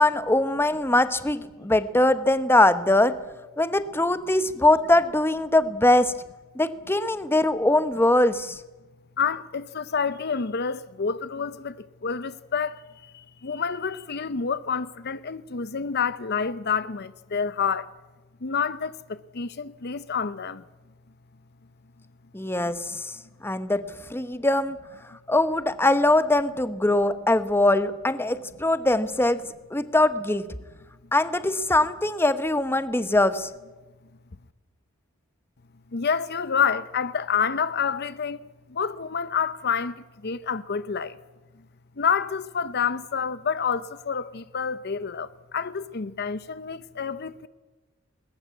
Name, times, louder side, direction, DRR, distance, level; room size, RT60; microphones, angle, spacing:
voice 1, 0.0-3.1 3.6-6.1 6.5-8.6 22.3-23.1 23.4-23.8 24.1-24.8 25.3-29.4 29.7-30.4 31.1-33.5, left 2 dB, 10° left, 1.0 m, -22 dB
voice 2, 9.2-17.9 18.4-20.6 22.6-22.7 35.9-41.2 42.0-47.5, left 6 dB, 50° left, 0.7 m, -28 dB
21.0 x 19.0 x 9.4 m
head